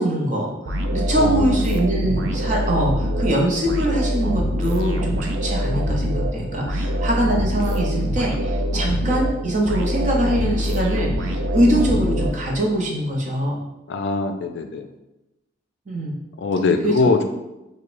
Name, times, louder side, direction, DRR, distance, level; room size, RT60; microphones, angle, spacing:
voice 1, 0.0-13.6 15.9-16.2 16.8-17.0, right 1 dB, 40° right, -2 dB, 0.6 m, -23 dB
sound 1, 0.7-12.8, equal, 85° right, 0.4 m, -24 dB
voice 2, 1.2-1.6 13.9-14.8 16.4-17.2, left 3 dB, 65° left, 6 dB, 0.3 m, -21 dB
4.7 x 2.1 x 2.5 m, 0.97 s
head